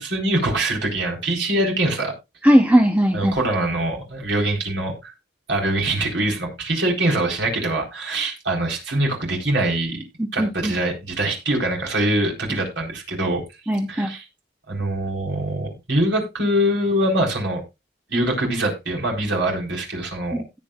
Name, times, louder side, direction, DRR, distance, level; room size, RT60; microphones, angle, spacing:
voice 1, 0.0-2.1 3.1-5.1 5.5-10.0 10.3-13.4 13.9-14.2 14.7-17.6 18.1-20.4, right 1 dB, 80° right, 0 dB, 4.2 m, -23 dB
voice 2, 2.4-3.3 10.2-10.7 13.7-14.1 20.3-20.6, equal, 10° right, 6 dB, 0.8 m, -18 dB
17.0 x 7.6 x 2.5 m, 0.24 s
head